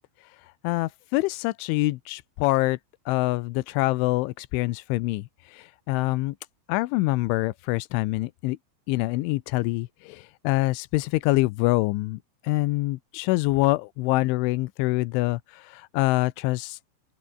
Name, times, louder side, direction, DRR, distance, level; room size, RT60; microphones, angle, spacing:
voice 1, 0.6-2.8 3.1-6.3 6.7-8.6 8.9-16.8, left 20 dB, 85° left, 3.1 m, -25 dB
open air
omnidirectional pair, 5.5 m